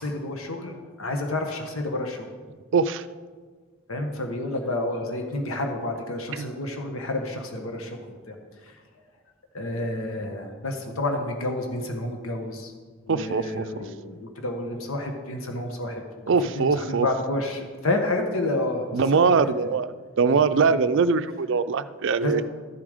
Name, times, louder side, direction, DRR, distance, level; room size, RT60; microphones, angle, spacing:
voice 1, 0.0-2.3 3.9-8.4 8.6-8.8 9.5-12.7 13.1-19.4 20.3-20.7 22.2-22.4, left 2 dB, 75° left, 4 dB, 1.2 m, -30 dB
voice 2, 2.7-3.0 6.4-6.5 13.1-13.6 16.3-17.1 18.9-19.9 20.2-22.4, right 5 dB, 60° right, 12 dB, 0.4 m, -22 dB
13.0 x 7.2 x 5.0 m, 1.5 s
head